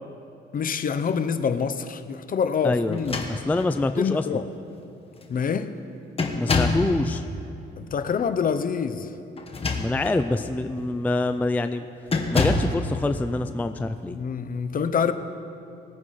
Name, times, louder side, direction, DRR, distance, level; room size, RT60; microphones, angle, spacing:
voice 1, 0.5-3.3 4.0-4.5 5.3-5.7 7.8-9.1 14.1-15.1, left 6 dB, 45° left, 0.7 m, -26 dB
voice 2, 2.6-4.4 6.4-7.2 9.8-11.9 12.3-14.2, left 2 dB, 10° left, 0.4 m, -26 dB
sound 1, 2.9-3.8 4.7-4.8 5.2-5.5 6.2-6.9 9.4-10.2 10.8-11.0 12.1-12.8, left 3 dB, 30° left, 1.3 m, -26 dB
19.5 x 9.7 x 3.2 m
cardioid pair, 90°, 20 cm